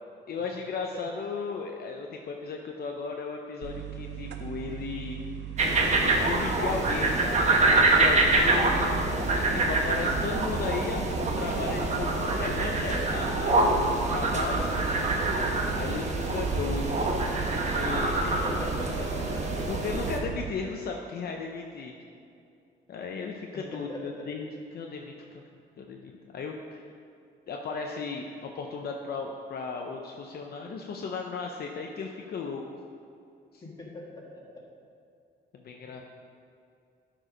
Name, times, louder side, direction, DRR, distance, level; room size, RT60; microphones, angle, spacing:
voice 1, 0.3-5.2 5.7-15.0 15.8-17.0 17.5-18.4 19.7-22.0 22.9-25.4 25.8-26.9 27.5-32.8 33.5-33.6 35.5-36.0, left 4 dB, 55° left, 1 dB, 0.6 m, -36 dB
sound 1, 3.6-20.5, right 9 dB, 70° right, 0.7 m, -37 dB
sound 2, 5.6-20.2, right 2 dB, 35° right, 1.0 m, -26 dB
voice 2, 18.1-19.6 23.5-24.2 33.6-34.4 35.8-35.9, left 1 dB, 20° left, -3 dB, 1.7 m, -41 dB
12.0 x 4.6 x 5.1 m, 2.5 s
wide cardioid pair, 165°, 19 cm